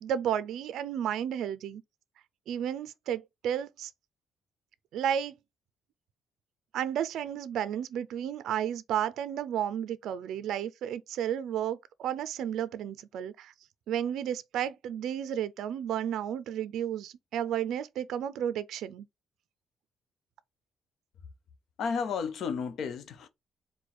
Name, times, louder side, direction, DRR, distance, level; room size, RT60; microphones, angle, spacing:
voice 1, 0.0-1.8 2.5-3.9 4.9-5.3 6.7-13.5 13.9-19.1, right 9 dB, 75° right, 0.4 m, -32 dB
voice 2, 21.8-23.3, left 6 dB, 60° left, 0.8 m, -32 dB
4.7 x 2.2 x 4.2 m
cardioid pair, 130°, 0 cm